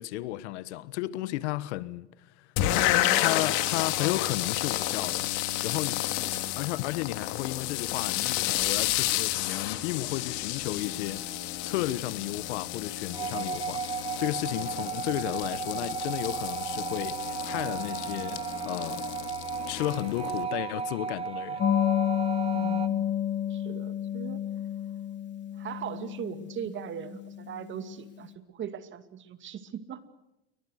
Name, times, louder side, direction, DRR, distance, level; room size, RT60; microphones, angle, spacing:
voice 1, 0.0-5.3 5.6-6.3 6.6-11.2 11.6-19.1 19.7-21.6, left 16 dB, 80° left, 1.4 m, -33 dB
sound 1, 2.6-20.4, left 14 dB, 60° left, 3.1 m, -31 dB
sound 2, 13.1-22.9, right 7 dB, 15° right, 1.7 m, -35 dB
sound 3, 21.6-27.8, left 10 dB, 35° left, 3.1 m, -30 dB
voice 2, 22.5-23.1 23.5-24.4 25.5-30.0, right 9 dB, 35° right, 2.4 m, -39 dB
28.5 x 23.5 x 6.5 m
supercardioid pair, 130°, 34 cm